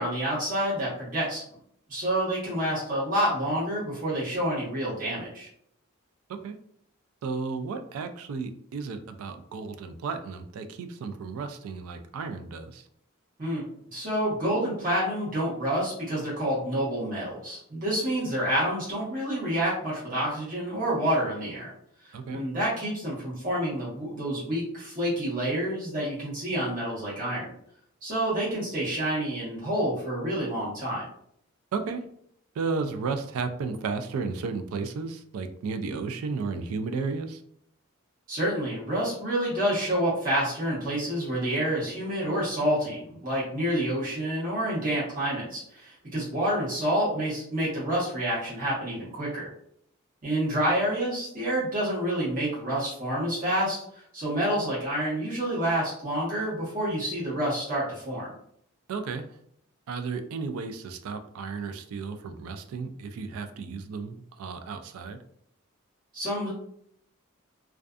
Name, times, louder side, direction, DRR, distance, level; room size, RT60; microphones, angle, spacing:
voice 1, 0.0-1.4 1.9-5.5 13.4-21.7 22.3-27.5 28.0-31.1 38.3-49.5 50.2-53.8 54.1-58.3 66.1-66.5, right 1 dB, 40° right, -8 dB, 1.0 m, -28 dB
voice 2, 7.2-12.9 22.1-22.4 31.7-32.0 32.6-37.4 58.9-59.2 59.9-65.2, right 4 dB, 80° right, 8 dB, 0.3 m, -33 dB
2.5 x 2.3 x 2.3 m, 0.67 s
head